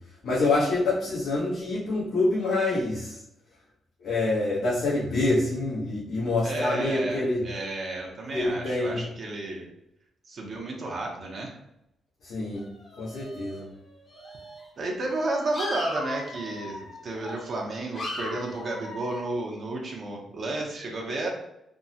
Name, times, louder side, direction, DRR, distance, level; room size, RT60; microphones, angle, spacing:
voice 1, 0.2-3.2 4.0-7.5 8.3-9.0 12.2-12.7 13.0-13.7, left 2 dB, 80° left, -8 dB, 0.9 m, -26 dB
voice 2, 6.4-9.7 10.2-11.6 14.8-21.3, right 2 dB, 50° right, -1 dB, 0.6 m, -32 dB
sound 1, 12.5-13.8 14.1-14.6 15.1-17.6 17.9-19.2, left 1 dB, 50° left, 0.9 m, -38 dB
3.5 x 2.0 x 2.7 m, 0.82 s
cardioid pair, 110°, 0 cm